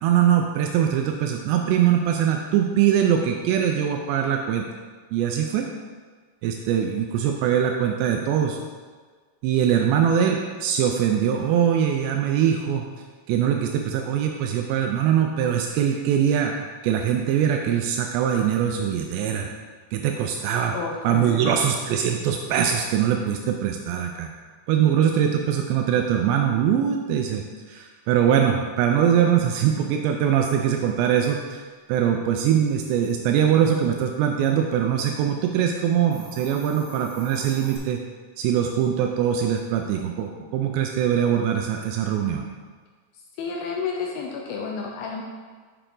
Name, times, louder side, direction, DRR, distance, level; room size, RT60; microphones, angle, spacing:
voice 1, 0.0-4.7 5.1-5.7 6.4-8.6 9.4-12.8 13.3-19.5 19.9-20.7 21.0-24.3 24.7-31.6 31.9-38.0 38.4-42.5, right 9 dB, 85° right, 3 dB, 2.7 m, -22 dB
voice 2, 20.7-21.6 43.1-45.2, left 5 dB, 80° left, 0 dB, 2.2 m, -31 dB
Hiss, 36.0-37.8, right 2 dB, 50° right, 3.1 m, -45 dB
7.9 x 6.9 x 3.8 m, 1.5 s
omnidirectional pair, 5.1 m